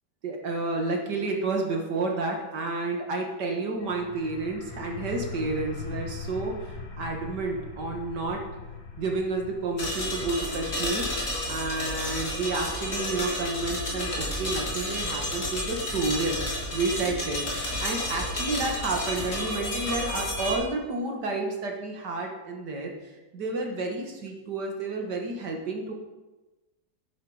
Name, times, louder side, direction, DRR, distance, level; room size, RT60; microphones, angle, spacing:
voice 1, 0.2-8.4 9.0-16.4 16.7-22.9 23.3-25.9, right 3 dB, 60° right, 1 dB, 2.4 m, -30 dB
sound 1, 3.8-15.3, left 5 dB, 85° left, 2.3 m, -42 dB
sound 2, 9.8-20.6, left 1 dB, 40° left, 3.1 m, -31 dB
11.0 x 9.2 x 5.1 m, 1.1 s
omnidirectional pair, 2.0 m